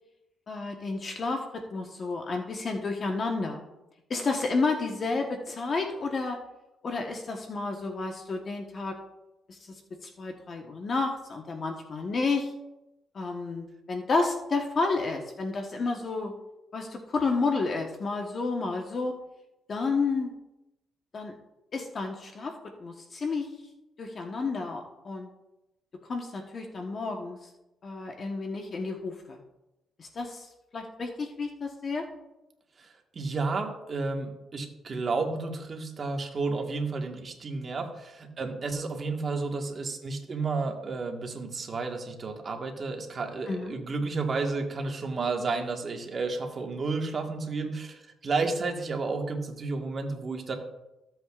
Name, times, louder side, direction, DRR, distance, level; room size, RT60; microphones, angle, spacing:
voice 1, 0.5-3.6 4.1-6.4 6.8-9.0 9.5-9.7 10.0-12.5 13.1-16.3 16.7-19.1 19.7-20.3 21.1-21.3 21.7-22.5 22.8-23.5 24.0-25.3 26.1-27.5 27.8-29.4 30.0-30.5 30.7-32.1 43.5-43.7, left 3 dB, 45° left, 3 dB, 1.1 m, -31 dB
voice 2, 33.1-50.5, right 3 dB, 45° right, 3 dB, 1.5 m, -31 dB
15.0 x 7.8 x 2.4 m, 0.94 s
cardioid pair, 90°, 0 cm